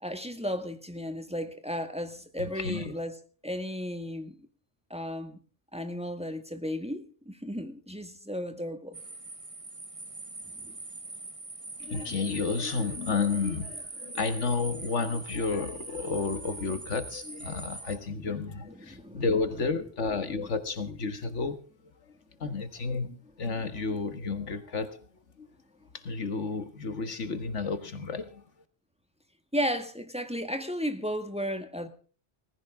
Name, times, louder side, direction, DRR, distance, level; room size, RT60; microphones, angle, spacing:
voice 1, 0.0-3.2 3.4-4.4 4.9-5.4 5.7-9.0 10.5-10.8 18.9-19.2 20.4-20.5 29.5-31.9, equal, 5° right, 1.9 m, -34 dB
voice 2, 2.4-3.0 11.8-21.6 22.0-22.1 22.4-25.1 25.4-25.5 25.9-28.4, left 4 dB, 85° left, 1.9 m, -31 dB
sound 1, 8.9-18.0, right 3 dB, 30° right, 1.6 m, -42 dB
19.5 x 15.5 x 3.7 m
omnidirectional pair, 1.2 m